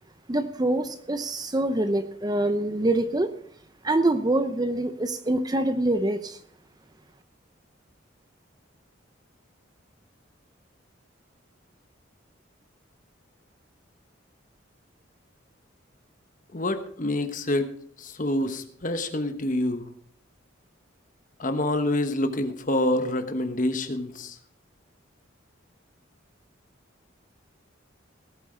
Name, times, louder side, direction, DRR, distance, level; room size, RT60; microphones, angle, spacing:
voice 1, 0.3-3.3 3.8-6.4, right 1 dB, 20° right, 10 dB, 0.6 m, -25 dB
voice 2, 16.5-17.7 18.0-19.8 21.4-24.4, left 1 dB, 40° left, 8 dB, 1.1 m, -27 dB
17.5 x 8.3 x 5.0 m, 0.62 s
head